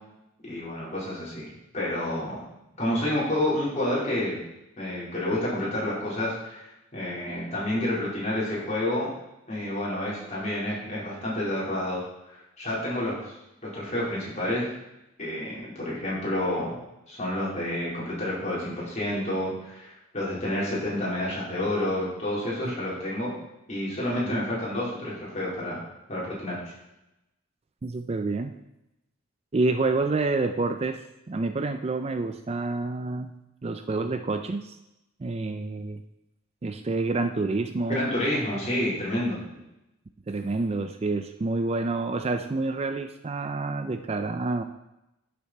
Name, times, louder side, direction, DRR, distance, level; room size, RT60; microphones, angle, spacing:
voice 1, 0.4-1.5 1.7-2.4 2.8-4.4 4.8-9.1 9.5-13.3 13.6-14.6 15.2-16.8 17.1-23.3 23.7-25.8 26.1-26.6 37.9-39.4, left 1 dB, 35° left, -6 dB, 4.1 m, -29 dB
voice 2, 27.8-28.5 29.5-31.0 31.3-33.3 33.6-34.8 35.2-36.0 36.6-38.1 40.3-44.6, right 3 dB, 30° right, 8 dB, 0.4 m, -28 dB
11.0 x 6.9 x 4.2 m, 0.91 s
head